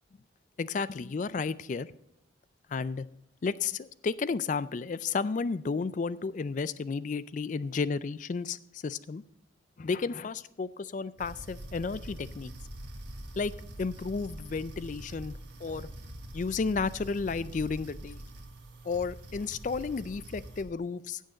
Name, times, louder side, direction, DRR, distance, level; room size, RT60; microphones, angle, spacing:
voice 1, 0.6-1.9 2.7-3.1 3.4-9.2 9.8-12.5 13.4-15.9 16.3-18.2 18.8-21.2, left 4 dB, 40° left, 17 dB, 0.3 m, -32 dB
sound 1, 11.2-20.6, right 1 dB, 70° right, 1.6 m, -44 dB
16.0 x 6.5 x 3.9 m, 0.78 s
head